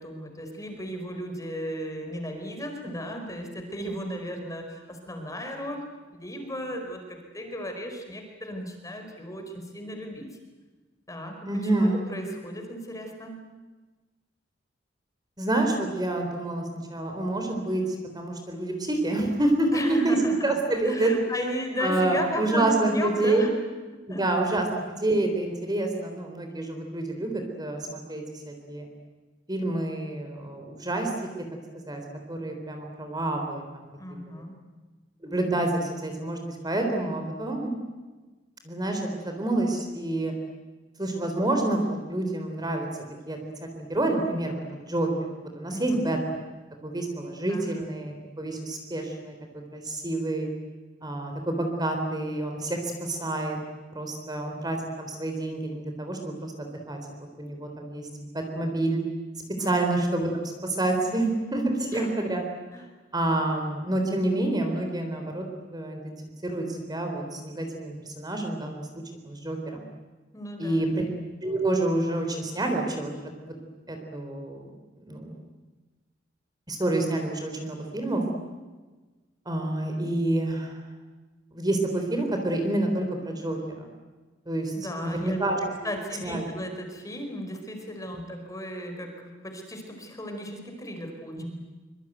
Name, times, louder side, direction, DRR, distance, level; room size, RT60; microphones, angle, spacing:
voice 1, 0.0-5.8 6.1-10.3 11.1-11.5 11.8-13.4 19.7-20.5 20.8-23.5 24.1-24.2 34.0-34.6 45.7-46.0 47.4-47.7 59.6-59.8 61.9-62.1 62.7-62.8 70.3-71.0 84.7-85.4 85.8-91.5, equal, 20° left, 4 dB, 4.9 m, -35 dB
voice 2, 11.4-12.1 15.4-16.6 16.9-21.5 21.8-23.4 24.1-28.9 29.5-31.1 31.9-32.0 32.3-33.9 34.3-34.4 35.2-37.7 38.6-40.3 41.0-42.9 43.3-43.4 43.7-45.1 45.5-46.2 46.8-49.3 49.7-50.5 51.0-53.6 53.9-57.0 57.4-58.1 58.3-59.0 59.6-62.4 63.1-65.5 65.7-66.2 66.4-68.9 69.2-69.8 70.6-71.0 71.4-73.1 73.5-73.6 73.9-74.7 75.1-75.3 76.7-78.2 79.5-80.8 81.5-83.9 84.5-84.7 85.0-85.9 86.2-86.4 88.1-88.3 91.4-91.5, right 2 dB, 20° right, 3 dB, 4.0 m, -28 dB
25.0 x 24.5 x 9.2 m, 1.3 s
head